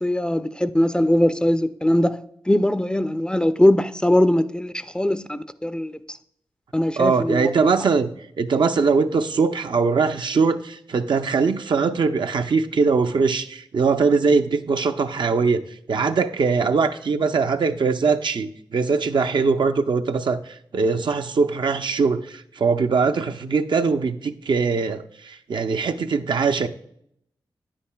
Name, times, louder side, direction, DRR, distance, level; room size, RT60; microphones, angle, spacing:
voice 1, 0.0-2.2 2.5-6.2 6.7-7.5, left 1 dB, 10° left, 0.4 m, -21 dB
voice 2, 7.0-8.1 8.4-15.6 15.9-26.7, right 4 dB, 65° right, 0.5 m, -21 dB
9.4 x 8.6 x 2.2 m
cardioid pair, 55°, 9 cm